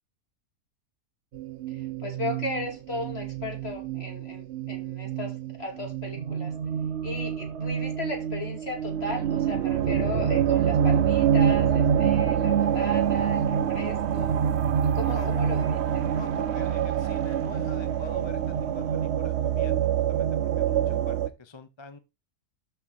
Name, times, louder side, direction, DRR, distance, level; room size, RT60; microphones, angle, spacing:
sound 1, 1.3-21.3, right 9 dB, 55° right, 0.8 m, -26 dB
voice 1, 1.7-6.5 7.0-14.4 14.8-16.0, left 2 dB, 40° left, 2.9 m, -36 dB
voice 2, 14.9-15.4 16.1-22.0, left 3 dB, 25° left, 0.7 m, -44 dB
12.0 x 4.5 x 4.0 m
omnidirectional pair, 1.7 m